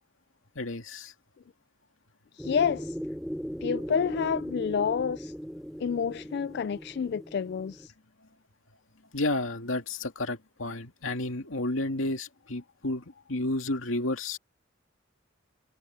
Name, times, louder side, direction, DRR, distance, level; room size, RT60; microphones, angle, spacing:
voice 1, 0.6-1.1 9.1-14.4, left 2 dB, 85° left, 2.3 m, -31 dB
voice 2, 2.4-3.0 3.6-5.3 5.8-7.9, left 6 dB, 55° left, 0.3 m, -29 dB
sound 1, 2.4-7.9, equal, ahead, 2.8 m, -38 dB
head